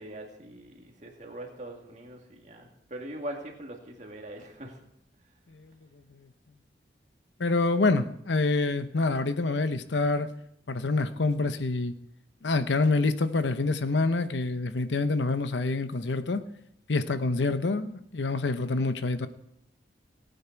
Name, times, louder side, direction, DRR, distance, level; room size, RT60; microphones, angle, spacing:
voice 1, 0.0-4.8, right 1 dB, 40° right, 1 dB, 2.2 m, -42 dB
voice 2, 7.4-10.3 10.7-11.9 12.4-16.4 16.9-19.3, left 3 dB, 85° left, 11 dB, 0.8 m, -26 dB
18.0 x 9.2 x 4.6 m, 0.76 s
head